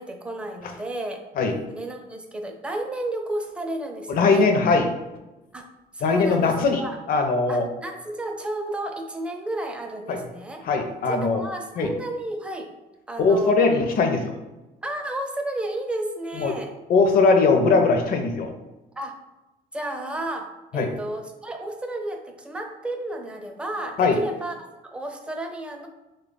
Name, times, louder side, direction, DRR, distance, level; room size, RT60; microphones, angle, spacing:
voice 1, 0.0-1.2 1.7-4.5 5.5-5.7 5.9-6.5 6.8-7.0 7.5-10.6 11.1-12.7 13.1-13.6 14.8-16.7 18.9-19.1 19.7-25.9, right 1 dB, 5° right, 3 dB, 0.4 m, -32 dB
voice 2, 4.1-4.9 6.0-6.8 7.1-7.7 10.1-10.2 10.6-11.4 11.8-11.9 13.2-14.3 16.3-16.5 16.9-18.5 20.7-20.9 24.0-24.2, left 4 dB, 60° left, 5 dB, 0.6 m, -20 dB
3.2 x 2.3 x 3.8 m, 1.0 s
cardioid pair, 110°, 17 cm